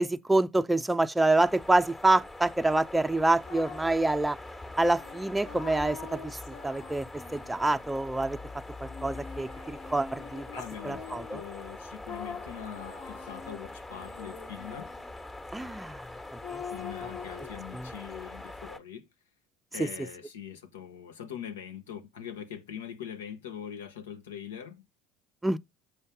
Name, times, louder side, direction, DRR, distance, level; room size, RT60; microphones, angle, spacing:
voice 1, 0.0-4.4 4.8-6.4 6.6-7.1 7.3-8.4 8.8-10.5 10.8-11.4 15.5-16.1 16.5-16.6 17.7-17.8 19.8-19.9 25.4-25.6, right 2 dB, 10° right, 0.5 m, -26 dB
sound 1, 1.4-18.8, left 2 dB, 25° left, 1.4 m, -44 dB
sound 2, 3.4-4.1 4.8-8.0 8.9-11.4 12.1-15.1 16.4-17.5, left 6 dB, 55° left, 1.4 m, -44 dB
voice 2, 10.5-14.9 16.7-19.1 19.7-24.8, left 9 dB, 75° left, 1.0 m, -42 dB
7.7 x 5.4 x 3.4 m
figure-of-eight pair, 65°, 0 cm